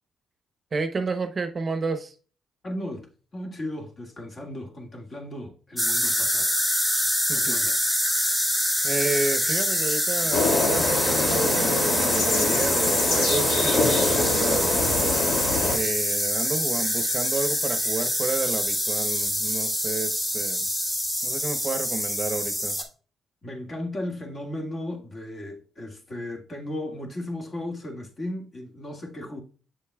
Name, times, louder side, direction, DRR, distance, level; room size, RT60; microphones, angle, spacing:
voice 1, 0.7-2.1 7.3-7.6 8.8-15.0 15.7-20.7 21.2-22.8, right 3 dB, 35° right, 0.7 m, -31 dB
voice 2, 2.6-6.5 7.3-7.8 23.4-29.4, left 1 dB, 40° left, 1.8 m, -35 dB
sound 1, 5.8-22.8, equal, 15° left, 1.4 m, -25 dB
sound 2, 10.3-15.8, left 2 dB, 75° left, 1.8 m, -25 dB
7.1 x 6.9 x 2.3 m
cardioid pair, 90°, 0 cm